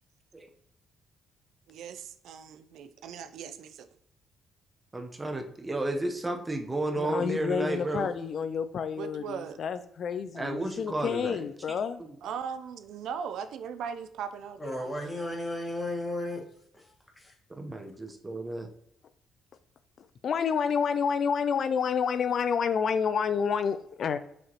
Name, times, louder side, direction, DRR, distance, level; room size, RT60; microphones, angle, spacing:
voice 1, 1.7-3.9 9.0-9.6 12.2-15.3, right 7 dB, 80° right, 0.4 m, -39 dB
voice 2, 4.9-8.1 10.3-11.4 17.6-18.7, right 2 dB, 20° right, 0.8 m, -32 dB
voice 3, 6.9-12.0 20.0-24.2, left 6 dB, 60° left, 0.3 m, -29 dB
voice 4, 14.6-16.4 16.7-16.8 17.2-17.3, left 1 dB, 15° left, 1.5 m, -34 dB
6.2 x 2.9 x 2.9 m
cardioid pair, 90°, 0 cm